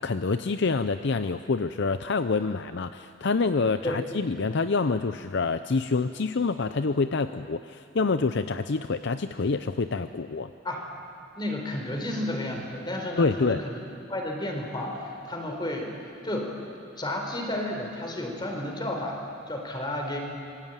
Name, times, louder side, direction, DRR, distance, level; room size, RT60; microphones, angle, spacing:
voice 1, 0.0-10.5 13.2-13.6, left 4 dB, 55° left, 10 dB, 0.6 m, -27 dB
voice 2, 11.3-13.8 14.1-16.5 17.0-20.2, left 1 dB, 20° left, 2 dB, 4.1 m, -32 dB
26.0 x 22.0 x 9.2 m, 2.5 s
head